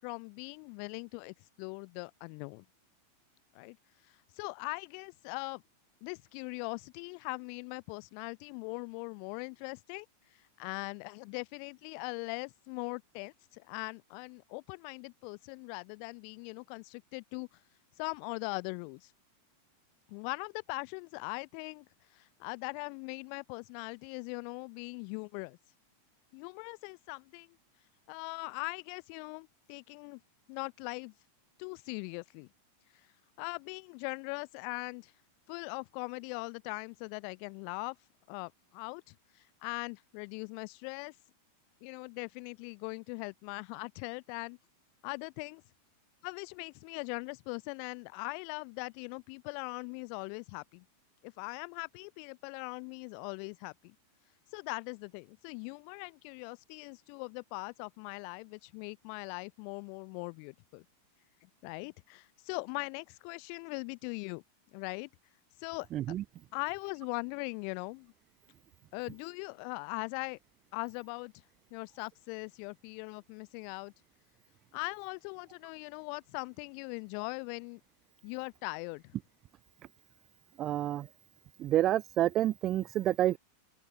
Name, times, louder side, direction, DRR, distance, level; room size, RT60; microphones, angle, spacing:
voice 1, 0.0-2.6 3.5-3.8 4.4-5.6 6.0-10.1 10.6-17.5 18.0-19.1 20.1-21.9 22.1-25.6 26.3-27.5 28.1-30.2 30.5-31.1 31.6-32.5 33.4-35.1 35.5-38.0 38.3-41.1 41.8-44.6 45.0-45.6 46.2-50.8 51.2-53.9 54.5-60.8 61.4-64.4 64.7-65.1 65.6-66.1 66.5-68.1 68.9-70.4 70.7-71.3 71.7-73.9 74.7-77.8 78.2-79.2, left 40 dB or more, 45° left, 6.1 m, -41 dB
voice 2, 65.9-66.2 80.6-81.1 81.6-83.4, right 13 dB, 30° right, 1.6 m, -28 dB
open air
figure-of-eight pair, 90°, 0 cm